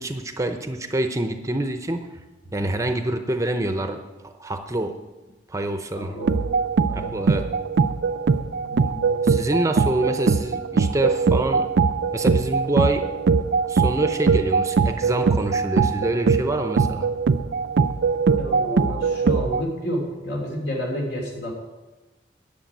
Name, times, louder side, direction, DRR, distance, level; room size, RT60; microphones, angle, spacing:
voice 1, 0.0-2.1 2.5-5.0 5.5-6.2 6.9-7.5 9.2-11.7 12.1-13.1 13.7-17.1, right 1 dB, 20° right, 7 dB, 0.7 m, -26 dB
voice 2, 5.9-6.5 6.9-7.3 8.7-9.5 18.4-21.5, equal, 70° left, 0 dB, 3.5 m, -31 dB
sound 1, 6.2-19.6, right 5 dB, 75° right, 0.5 m, -21 dB
10.0 x 6.8 x 9.0 m, 1.1 s
head